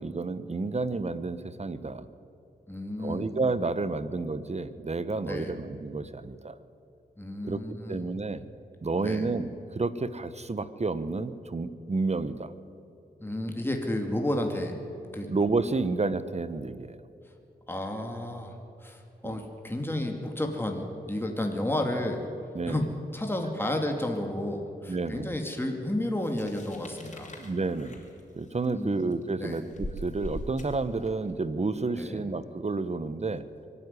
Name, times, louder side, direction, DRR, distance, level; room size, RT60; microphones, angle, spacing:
voice 1, 0.0-2.1 3.0-6.6 7.4-7.6 7.9-8.4 8.8-12.5 15.3-17.0 19.2-19.4 22.5-22.9 24.9-25.3 27.4-28.1 28.4-33.5, right 3 dB, 40° right, 14 dB, 1.1 m, -30 dB
voice 2, 2.7-3.3 5.2-5.5 7.2-8.0 9.0-9.3 13.2-14.8 15.1-15.3 17.7-22.2 22.7-22.9 23.1-27.3 28.7-28.9 29.4-29.6 32.0-32.2, left 1 dB, 10° left, 2 dB, 2.4 m, -32 dB
sound 1, 26.2-31.3, left 1 dB, 45° left, 4.4 m, -42 dB
23.5 x 11.0 x 9.8 m, 2.7 s
cardioid pair, 65°, 18 cm